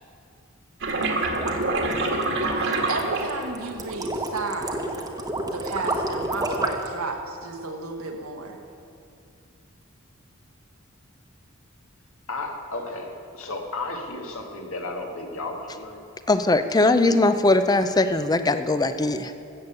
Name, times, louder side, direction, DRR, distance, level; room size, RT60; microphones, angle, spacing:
sound 1, 0.8-3.8 4.6-5.1, right 2 dB, 60° right, 1.8 m, -25 dB
sound 2, 0.9-6.9, right 1 dB, 15° right, 1.1 m, -30 dB
voice 1, 2.5-5.0 5.5-8.6, right 3 dB, 85° right, 3 dB, 1.6 m, -33 dB
voice 2, 12.3-16.0, left 2 dB, 70° left, 2 dB, 1.8 m, -33 dB
voice 3, 16.3-19.4, left 2 dB, 20° left, 10 dB, 0.5 m, -20 dB
14.5 x 7.2 x 8.2 m, 2.6 s
head